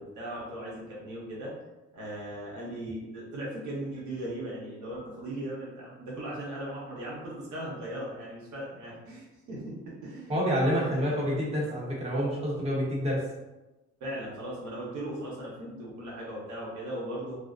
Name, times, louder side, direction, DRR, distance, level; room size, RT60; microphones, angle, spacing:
voice 1, 0.0-1.5 1.9-10.4 10.8-11.2 14.0-17.4, right 1 dB, 75° right, -5 dB, 0.9 m, -38 dB
voice 2, 10.3-13.2, equal, 20° right, -6 dB, 0.8 m, -28 dB
2.5 x 2.1 x 2.4 m, 1.0 s
cardioid pair, 90°, 30 cm